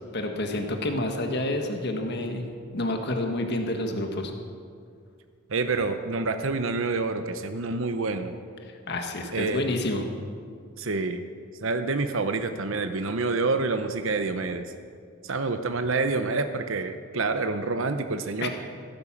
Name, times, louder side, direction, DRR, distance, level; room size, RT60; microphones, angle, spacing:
voice 1, 0.1-2.5 2.7-4.3 8.9-10.0 18.4-18.5, left 1 dB, 50° left, 4 dB, 1.5 m, -28 dB
voice 2, 5.5-8.3 9.3-9.7 10.8-11.3 11.6-14.6 15.2-18.5, right 3 dB, 65° right, 8 dB, 0.8 m, -27 dB
16.0 x 11.0 x 7.4 m, 2.2 s
head